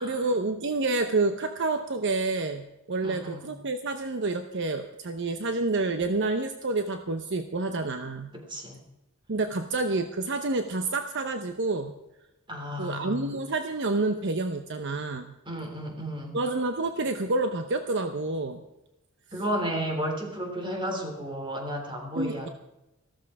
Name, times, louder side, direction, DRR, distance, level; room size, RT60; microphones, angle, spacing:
voice 1, 0.0-8.3 9.3-11.9 12.8-15.4 16.3-18.6 22.2-22.5, right 3 dB, 60° right, 8 dB, 0.9 m, -28 dB
voice 2, 3.0-3.5 8.3-8.8 12.5-13.4 15.5-16.4 19.3-22.5, equal, 25° right, 2 dB, 3.3 m, -33 dB
14.5 x 13.5 x 4.8 m, 0.92 s
head